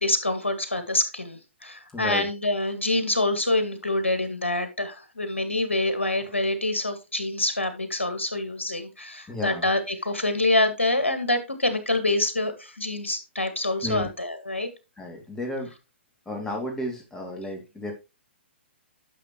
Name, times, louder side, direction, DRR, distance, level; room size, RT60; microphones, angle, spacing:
voice 1, 0.0-14.7, left 2 dB, 85° left, 9 dB, 2.0 m, -26 dB
voice 2, 1.9-2.3 9.3-9.7 13.8-14.1 15.0-15.7 16.3-17.9, left 1 dB, 10° left, 2 dB, 2.6 m, -32 dB
10.5 x 6.7 x 3.1 m, 0.27 s
figure-of-eight pair, 120°, 6 cm